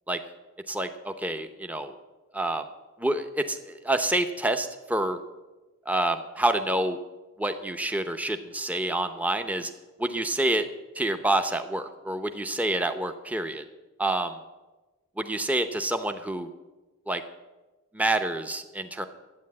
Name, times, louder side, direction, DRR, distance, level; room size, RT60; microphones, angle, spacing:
voice 1, 0.7-1.9 2.3-2.7 3.0-5.2 5.9-7.0 7.4-9.7 10.0-10.7 11.0-13.6 14.0-14.4 15.2-16.5 17.1-17.2 17.9-19.1, right 1 dB, 5° right, 7 dB, 0.7 m, -27 dB
11.5 x 8.5 x 8.6 m, 1.2 s
head